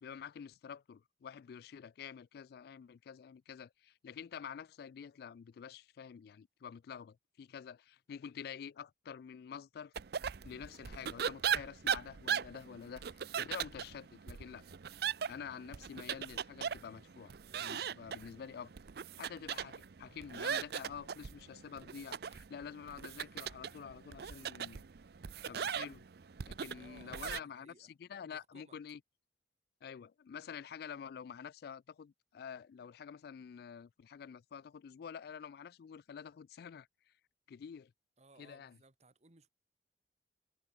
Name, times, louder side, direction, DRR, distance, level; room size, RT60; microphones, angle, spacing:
voice 1, 0.0-9.9 10.4-14.6 15.3-18.7 19.2-24.8 25.4-26.0 26.5-29.0 29.8-36.9 37.5-37.9 38.4-38.8, left 7 dB, 60° left, 0.3 m, -48 dB
sound 1, 10.0-27.4, right 8 dB, 60° right, 0.5 m, -39 dB
voice 2, 26.7-27.9 28.2-28.8 38.2-39.5, right 2 dB, 40° right, 1.9 m, -62 dB
head